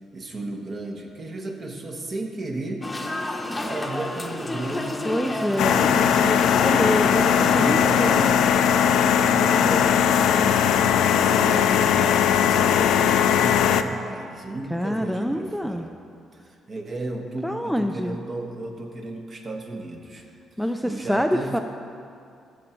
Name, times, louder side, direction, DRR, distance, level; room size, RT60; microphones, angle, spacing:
voice 1, 0.1-2.8 3.6-6.3 7.0-10.7 11.1-15.9 16.5-20.2 20.8-21.6, right 2 dB, 40° right, 2 dB, 1.2 m, -34 dB
sound 1, 2.8-8.3, left 1 dB, 15° left, 0.9 m, -31 dB
voice 2, 5.0-5.8 6.2-8.2 14.7-15.9 17.4-18.2 20.6-21.6, equal, ahead, 5 dB, 0.3 m, -26 dB
sound 2, 5.6-13.8, left 8 dB, 85° left, 0.3 m, -19 dB
14.0 x 5.0 x 4.5 m, 2.4 s
cardioid pair, 90°, 0 cm